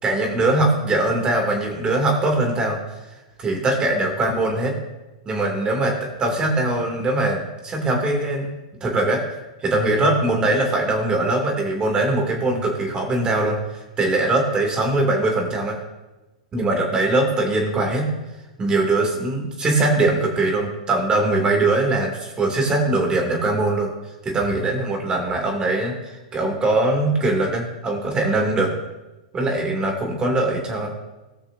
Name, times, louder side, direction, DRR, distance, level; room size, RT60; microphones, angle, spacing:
voice 1, 0.0-2.8 3.4-4.7 5.3-8.5 8.8-9.2 9.6-13.6 14.0-15.8 16.5-18.1 18.6-23.9 24.2-28.7 29.3-30.9, right 2 dB, 20° right, 1 dB, 2.5 m, -21 dB
18.0 x 6.3 x 2.7 m, 1.1 s
hypercardioid pair, 110°, 4 cm